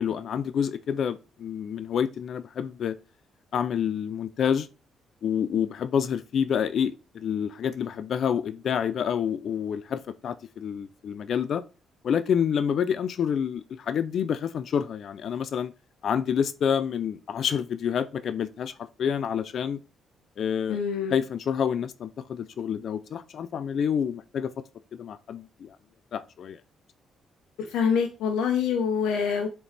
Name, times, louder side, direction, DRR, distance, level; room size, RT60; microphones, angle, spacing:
voice 1, 0.0-3.0 3.5-4.7 5.2-11.6 12.0-15.7 16.0-18.7 19.0-19.8 20.4-20.8 21.1-24.5 25.0-25.8 26.1-26.6, left 8 dB, 60° left, 0.6 m, -28 dB
voice 2, 20.7-21.2 27.6-29.5, left 6 dB, 85° left, 1.2 m, -25 dB
7.1 x 4.4 x 3.5 m
cardioid pair, 90°, 0 cm